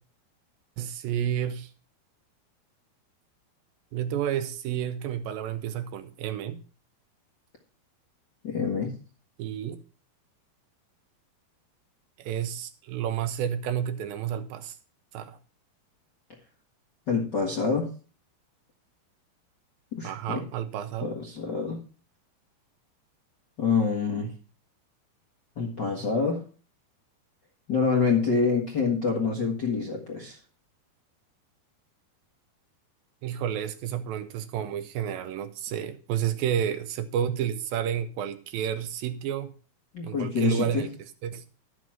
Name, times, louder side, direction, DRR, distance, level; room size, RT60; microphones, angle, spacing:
voice 1, 0.8-1.7 3.9-6.6 9.4-9.8 12.2-14.8 15.1-15.4 20.0-21.1 33.2-39.5 40.0-41.4, right 9 dB, 75° right, 2.3 m, -30 dB
voice 2, 8.4-8.9 17.1-17.9 19.9-20.4 21.0-21.8 23.6-24.3 25.6-26.4 27.7-30.4 39.9-40.8, left 5 dB, 50° left, 1.3 m, -26 dB
12.5 x 6.2 x 6.0 m
omnidirectional pair, 4.5 m